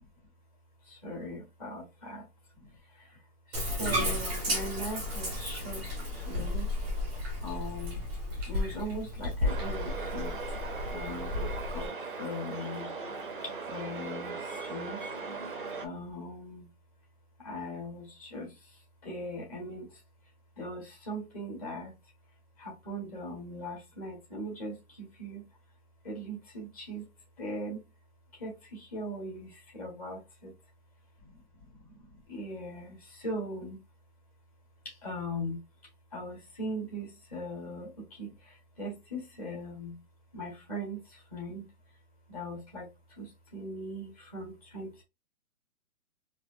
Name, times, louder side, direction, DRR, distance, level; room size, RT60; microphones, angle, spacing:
voice 1, 1.0-2.2 3.8-5.8 6.2-6.7 7.4-8.0 8.5-10.3 10.9-11.9 12.2-12.9 13.7-14.3 14.7-15.0 15.8-16.6 17.4-18.5 19.0-19.9 20.6-21.9 22.6-24.7 25.2-25.4 26.0-27.0 27.4-27.8 28.4-28.5 28.9-29.5 29.7-30.5 32.3-33.0 33.2-33.8 35.0-35.6 36.1-37.9 38.2-38.3 38.8-39.9 40.3-41.0 41.3-41.6 42.3-42.8 43.2-43.3 43.5-44.9, equal, 25° left, 1.5 m, -39 dB
Bathtub (filling or washing), 3.5-11.9, left 1 dB, ahead, 0.8 m, -33 dB
sound 1, 9.4-15.9, right 4 dB, 40° right, 0.4 m, -39 dB
4.2 x 2.9 x 2.5 m
hypercardioid pair, 180°, 44 cm